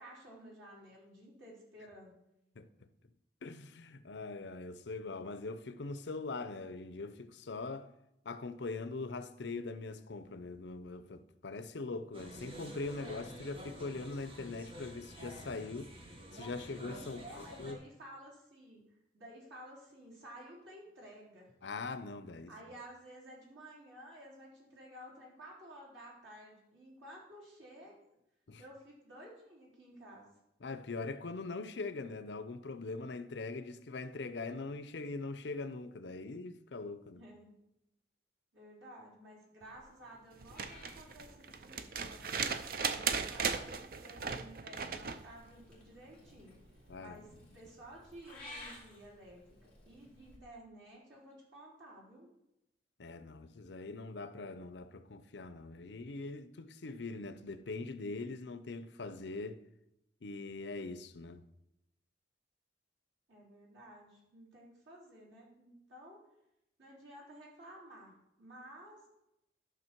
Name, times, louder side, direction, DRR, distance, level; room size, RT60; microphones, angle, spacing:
voice 1, 0.0-2.1 17.1-18.8 19.1-21.5 22.5-28.0 28.6-30.3 37.1-37.6 38.5-42.5 42.8-46.6 47.0-47.3 47.5-52.3 63.3-66.2 66.8-69.0, right 1 dB, 85° right, 3.9 m, -53 dB
voice 2, 3.4-7.9 8.2-15.9 16.3-17.8 21.6-22.5 28.5-28.6 30.6-37.2 46.9-47.4 53.0-59.6 60.2-61.4, left 3 dB, 70° left, 0.6 m, -42 dB
sound 1, 12.1-17.7, equal, 30° right, 1.3 m, -49 dB
sound 2, 40.4-45.3 46.9-47.0, right 6 dB, 50° right, 0.5 m, -37 dB
Purr / Meow, 40.5-43.8 44.7-50.4, left 1 dB, 5° left, 2.5 m, -56 dB
11.5 x 6.4 x 4.5 m
head